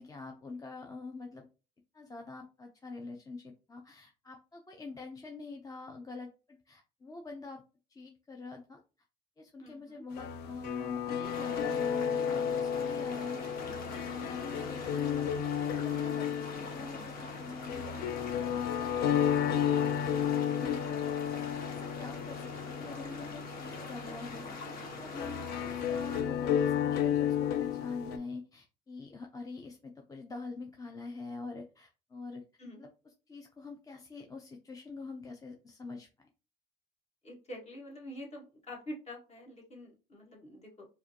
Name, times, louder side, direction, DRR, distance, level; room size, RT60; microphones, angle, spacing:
voice 1, 0.0-1.5 1.9-7.6 7.9-8.8 9.4-13.5 14.1-18.0 20.4-21.2 21.6-24.5 25.0-25.4 25.7-32.4 32.8-32.9 33.3-36.1, left 3 dB, 20° left, 2 dB, 0.5 m, -45 dB
voice 2, 9.6-10.0 32.6-32.9 37.2-40.9, left 1 dB, 40° left, -1 dB, 1.7 m, -46 dB
sound 1, 10.2-28.2, left 9 dB, 80° left, 0.5 m, -32 dB
sound 2, 11.2-26.2, left 3 dB, 60° left, 1.3 m, -44 dB
4.7 x 2.2 x 2.8 m, 0.33 s
cardioid pair, 110°, 17 cm